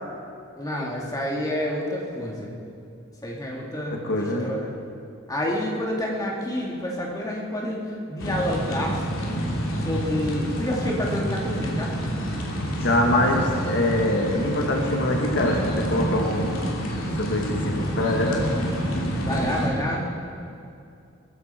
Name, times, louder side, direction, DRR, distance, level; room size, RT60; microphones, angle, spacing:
voice 1, 0.6-2.6 3.2-4.8 5.3-9.0 9.8-11.9 19.2-20.1, left 1 dB, 20° left, -2 dB, 2.4 m, -28 dB
voice 2, 4.0-4.6 12.7-16.6 17.2-18.4, left 1 dB, 60° left, 1 dB, 1.7 m, -24 dB
sound 1, 8.2-19.7, equal, 90° left, 2.9 m, -28 dB
20.0 x 15.0 x 4.4 m, 2.5 s
head